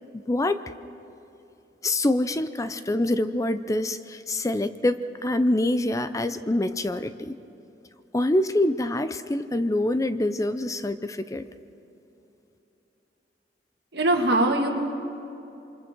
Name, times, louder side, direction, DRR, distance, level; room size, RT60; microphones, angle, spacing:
voice 1, 0.3-0.6 1.8-7.4 8.1-11.4, left 1 dB, 20° left, 11 dB, 0.5 m, -25 dB
voice 2, 13.9-14.7, right 1 dB, 65° right, 2 dB, 2.1 m, -21 dB
27.5 x 24.5 x 4.6 m, 2.9 s
head